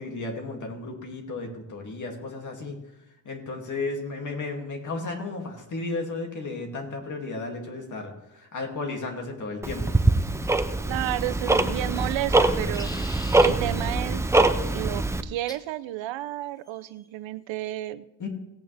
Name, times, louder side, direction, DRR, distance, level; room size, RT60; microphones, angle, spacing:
voice 1, 0.0-2.8 3.2-10.0 18.2-18.3, left 3 dB, 40° left, 1 dB, 2.4 m, -34 dB
Tick-tock, 9.6-15.2, right 2 dB, 5° right, 0.3 m, -23 dB
voice 2, 10.9-14.2 14.7-18.0, right 15 dB, 90° right, 15 dB, 0.7 m, -32 dB
sound 1, 12.4-13.5 15.5-15.7 16.7-17.1, left 1 dB, 10° left, 0.7 m, -42 dB
sound 2, 13.1-14.9, right 6 dB, 30° right, 2.4 m, -42 dB
18.0 x 8.7 x 3.3 m, 0.93 s
cardioid pair, 155°, 44 cm